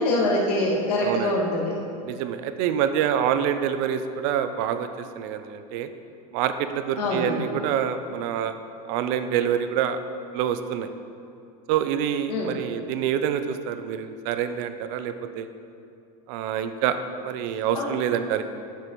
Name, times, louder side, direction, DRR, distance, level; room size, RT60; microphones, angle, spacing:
voice 1, 0.0-1.8 7.0-7.4 12.3-12.5 17.7-17.9, left 1 dB, 90° left, -4 dB, 2.0 m, -24 dB
voice 2, 1.0-1.4 2.1-4.9 5.2-5.9 6.3-8.5 8.9-10.0 10.3-10.9 11.7-15.5 16.3-17.0 17.2-18.4, right 9 dB, 60° right, 10 dB, 0.6 m, -26 dB
11.0 x 6.3 x 3.1 m, 2.5 s
supercardioid pair, 115°, 20 cm